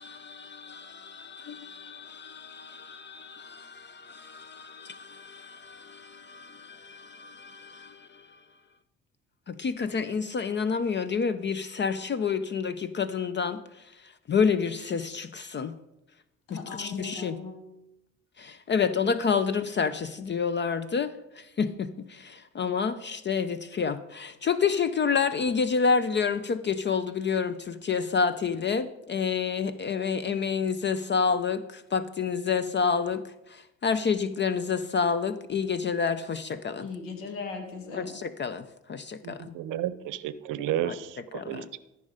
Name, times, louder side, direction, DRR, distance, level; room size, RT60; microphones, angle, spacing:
voice 1, 0.0-8.2 9.5-13.6 14.3-15.8 16.5-17.4 18.4-33.2 33.5-36.9 37.9-39.4 40.8-41.7, left 6 dB, 35° left, 0.6 m, -29 dB
voice 2, 16.5-17.5 36.8-38.2, left 4 dB, 80° left, 2.2 m, -38 dB
voice 3, 39.2-40.9 41.5-41.8, right 12 dB, 70° right, 0.7 m, -31 dB
14.0 x 5.5 x 5.0 m
supercardioid pair, 70°, 33 cm